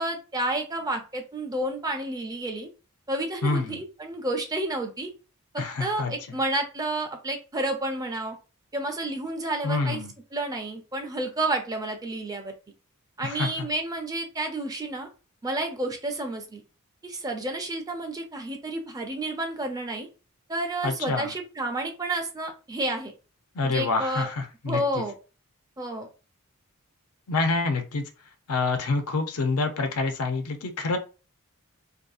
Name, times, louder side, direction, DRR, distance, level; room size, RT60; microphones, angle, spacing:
voice 1, 0.0-2.7 3.1-5.1 5.5-8.4 8.7-10.0 10.3-12.5 13.2-15.1 15.4-16.6 17.0-20.1 20.5-23.1 23.6-24.3 24.6-25.2 25.8-26.1, right 2 dB, 15° right, 4 dB, 0.4 m, -30 dB
voice 2, 3.4-3.8 5.6-6.1 9.6-10.1 13.2-13.7 20.8-21.3 23.6-25.0 27.3-28.0 28.5-31.0, left 3 dB, 75° left, 6 dB, 0.5 m, -27 dB
2.6 x 2.3 x 2.3 m, 0.33 s
head